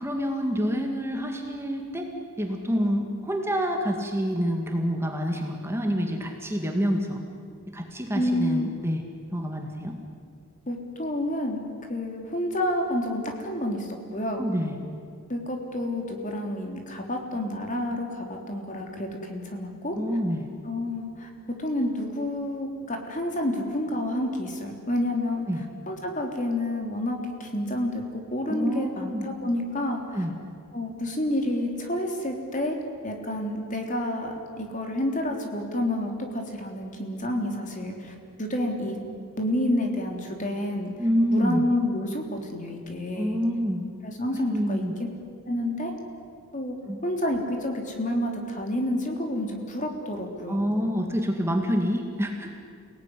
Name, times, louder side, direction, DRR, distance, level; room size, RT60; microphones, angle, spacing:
voice 1, 0.0-2.1 2.4-7.2 7.7-9.0 9.3-10.0 14.4-14.7 20.0-20.5 25.5-25.6 28.5-29.3 30.1-30.3 41.0-41.6 43.2-43.8 44.5-44.9 46.9-47.0 50.5-52.5, equal, 10° right, 2 dB, 2.1 m, -27 dB
voice 2, 8.1-8.7 10.7-11.6 11.9-14.5 15.3-20.0 20.6-25.5 25.9-30.2 30.7-32.8 33.0-39.0 39.4-40.9 41.3-43.4 44.0-44.8 45.5-45.9 46.5-46.8 47.0-50.6, left 1 dB, 35° left, 2 dB, 3.5 m, -29 dB
29.0 x 18.5 x 10.0 m, 2.2 s
head